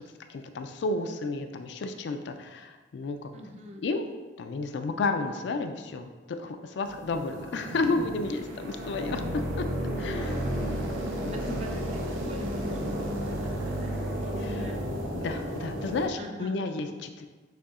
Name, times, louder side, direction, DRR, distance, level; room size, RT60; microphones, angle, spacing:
voice 1, 0.3-3.3 3.8-4.0 4.4-9.7 10.0-10.4 11.2-11.7 14.4-14.7 15.1-17.3, left 3 dB, 60° left, 7 dB, 0.3 m, -32 dB
voice 2, 3.3-3.9 10.0-10.8 11.1-14.8 16.1-16.6, equal, 30° right, 3 dB, 0.4 m, -44 dB
sound 1, 6.8-16.1, equal, 80° right, 0.7 m, -32 dB
6.6 x 2.7 x 2.4 m, 1.3 s
head